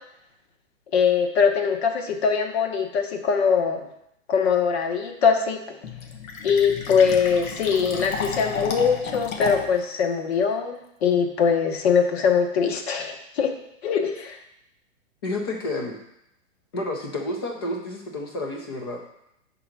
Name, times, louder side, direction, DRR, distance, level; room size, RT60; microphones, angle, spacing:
voice 1, 0.9-3.9 4.3-5.8 6.4-13.5 13.8-14.4, left 6 dB, 50° left, 4 dB, 0.9 m, -22 dB
Fill (with liquid), 5.8-9.8, left 5 dB, 80° left, 1.1 m, -32 dB
voice 2, 15.2-16.0 16.7-19.0, left 2 dB, 20° left, 2 dB, 0.4 m, -30 dB
5.4 x 3.9 x 5.8 m, 0.79 s
hypercardioid pair, 160°, 40 cm